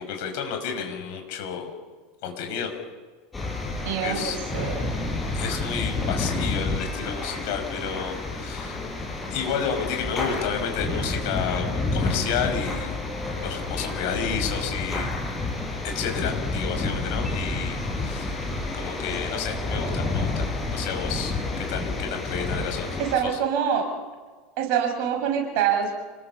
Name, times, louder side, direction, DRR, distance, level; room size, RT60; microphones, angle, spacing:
voice 1, 0.0-1.7 2.2-2.7 3.8-4.7 5.3-8.8 9.3-13.0 13.4-15.1 15.8-18.5 18.7-22.9 23.2-23.3, left 7 dB, 55° left, 5 dB, 5.5 m, -31 dB
sound 1, 3.3-23.2, left 2 dB, 15° left, 6.1 m, -29 dB
voice 2, 3.9-4.9 23.0-23.8 24.6-25.9, right 8 dB, 50° right, 2 dB, 7.1 m, -25 dB
29.0 x 21.0 x 5.7 m, 1.4 s
figure-of-eight pair, 80°, 0 cm